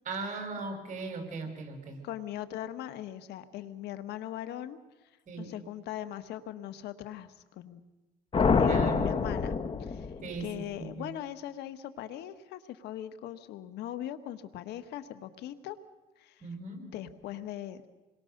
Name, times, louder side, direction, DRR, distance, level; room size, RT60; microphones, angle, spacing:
voice 1, 0.1-2.0 5.3-5.5 8.7-9.1 10.2-11.1 16.4-16.9, right 3 dB, 50° right, 5 dB, 5.7 m, -38 dB
voice 2, 2.0-4.8 5.4-7.8 8.4-9.5 9.8-10.1 10.4-15.8 16.2-16.5 16.8-17.9, left 12 dB, 80° left, 11 dB, 1.5 m, -40 dB
sound 1, 8.3-10.6, left 5 dB, 30° left, 1.2 m, -27 dB
28.0 x 22.5 x 6.7 m, 1.1 s
cardioid pair, 110°, 17 cm